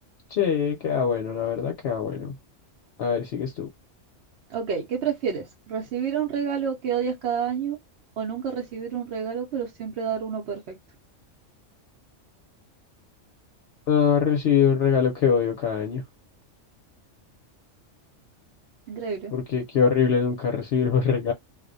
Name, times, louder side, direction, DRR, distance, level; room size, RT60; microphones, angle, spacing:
voice 1, 0.3-2.3 3.0-3.7 13.9-16.0 19.3-21.3, left 7 dB, 60° left, 0.8 m, -23 dB
voice 2, 4.5-7.8 8.2-10.8 18.9-19.3, right 7 dB, 65° right, 0.9 m, -29 dB
2.4 x 2.1 x 2.5 m
omnidirectional pair, 1.3 m